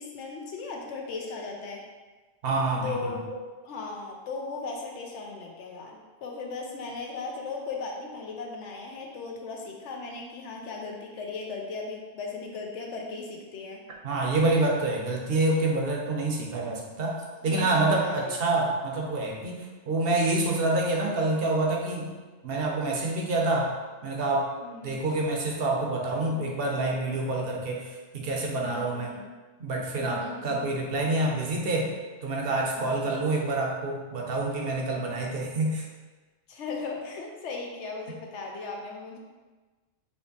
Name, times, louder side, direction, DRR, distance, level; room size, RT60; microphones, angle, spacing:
voice 1, 0.0-1.8 2.8-13.8 17.4-18.4 24.6-25.1 28.7-29.4 30.0-30.8 32.8-33.2 35.0-35.1 36.5-39.2, left 4 dB, 85° left, 0 dB, 1.0 m, -37 dB
voice 2, 2.4-3.1 14.0-17.2 17.4-22.1 22.4-23.7 24.0-24.5 24.8-29.1 29.6-31.9 32.2-35.8, right 2 dB, 60° right, 0 dB, 0.9 m, -27 dB
4.4 x 2.9 x 2.8 m, 1.3 s
omnidirectional pair, 1.2 m